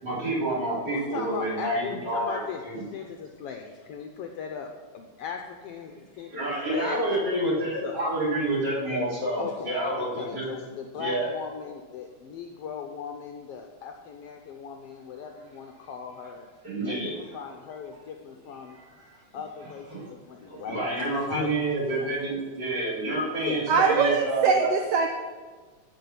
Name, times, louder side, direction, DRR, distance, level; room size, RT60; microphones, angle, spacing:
voice 1, 0.0-2.4 2.6-2.8 6.3-10.4 10.9-11.3 16.6-17.4 18.8-18.9 19.9-20.1 20.5-24.7, right 1 dB, 35° right, -7 dB, 4.5 m, -28 dB
voice 2, 0.9-4.7 4.9-7.2 7.8-8.0 9.4-16.5 16.8-18.8 19.3-22.4 23.4-24.0, left 7 dB, 75° left, 3 dB, 1.4 m, -38 dB
voice 3, 23.7-25.1, right 6 dB, 75° right, 4 dB, 1.5 m, -22 dB
14.5 x 5.6 x 5.8 m, 1.4 s
omnidirectional pair, 3.3 m